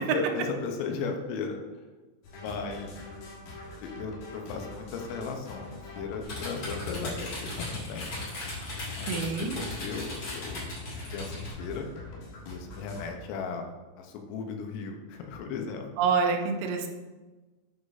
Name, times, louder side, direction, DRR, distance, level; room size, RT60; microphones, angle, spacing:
voice 1, 0.0-1.6 2.4-3.0 3.8-8.1 8.9-10.7 11.1-11.9 12.5-13.6 14.0-15.9, left 5 dB, 90° left, 3 dB, 3.5 m, -36 dB
sound 1, 2.2-13.1, left 2 dB, 65° left, 2.9 m, -44 dB
sound 2, 6.2-11.5, left 2 dB, 35° left, 2.5 m, -37 dB
voice 2, 9.1-9.6 16.0-16.9, right 5 dB, 85° right, 3 dB, 3.4 m, -27 dB
9.6 x 6.4 x 2.6 m, 1.2 s
omnidirectional pair, 5.9 m